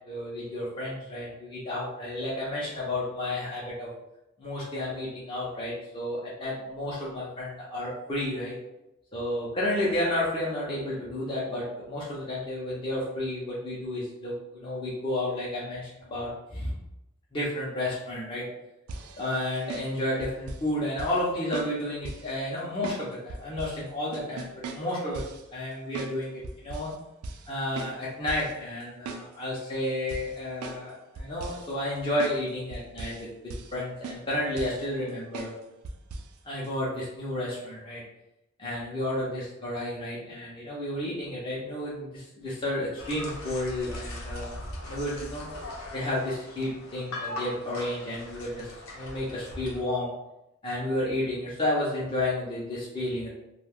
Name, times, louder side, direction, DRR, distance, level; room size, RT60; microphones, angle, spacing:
voice 1, 0.0-3.9 4.4-8.5 9.1-16.7 17.3-18.5 19.2-25.2 25.5-26.9 27.5-35.5 36.4-38.0 38.6-44.5 44.8-45.5 45.9-50.1 50.6-53.3, left 1 dB, 25° left, -8 dB, 0.6 m, -31 dB
sound 1, 18.9-20.7 21.0-21.2 21.5-22.3 22.8-23.8 24.1-25.4 25.9-26.2 26.4-27.0 27.2-27.5 27.8-28.5 28.8-29.6 30.1-30.9 31.2-31.7 32.2-32.4 32.7-33.3 33.5-33.8 34.0-34.9 35.3-35.6 35.8-36.3 36.6-36.7, right 3 dB, 75° right, 0.4 m, -39 dB
sound 2, 43.0-49.8, left 1 dB, 65° left, 0.7 m, -40 dB
2.5 x 2.2 x 3.4 m, 0.89 s
head